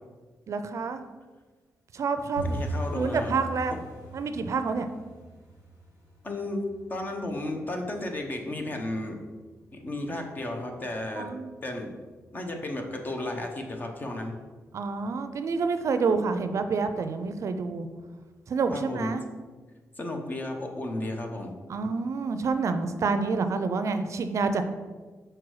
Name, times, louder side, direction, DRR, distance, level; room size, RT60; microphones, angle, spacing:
voice 1, 0.5-1.0 1.9-2.6 2.9-3.7 4.1-4.9 11.1-11.5 14.7-17.9 18.5-19.2 21.7-24.6, right 4 dB, 60° right, 9 dB, 0.5 m, -28 dB
sound 1, 2.4-13.1 13.3-14.0 14.3-14.6 14.8-15.2 15.5-15.6 16.1-16.7 17.0-17.1 17.6-17.7, equal, 90° left, 2.2 m, -41 dB
voice 2, 2.5-3.4 3.7-3.8 6.2-6.6 6.9-9.2 9.7-11.3 11.6-11.9 12.3-14.4 18.7-19.1 20.0-21.5, left 1 dB, 30° left, 3 dB, 1.0 m, -33 dB
6.1 x 4.5 x 4.8 m, 1.3 s
cardioid pair, 110°, 6 cm